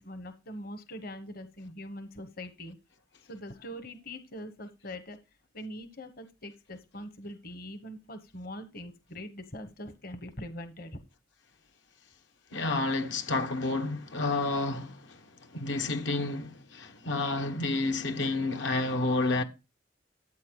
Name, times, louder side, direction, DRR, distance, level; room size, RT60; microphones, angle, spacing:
voice 1, 0.0-2.8 3.2-5.2 5.5-11.0, equal, 55° left, 1.2 m, -42 dB
voice 2, 12.5-15.2 15.5-19.4, left 2 dB, 85° left, 1.3 m, -30 dB
14.0 x 8.5 x 2.3 m
head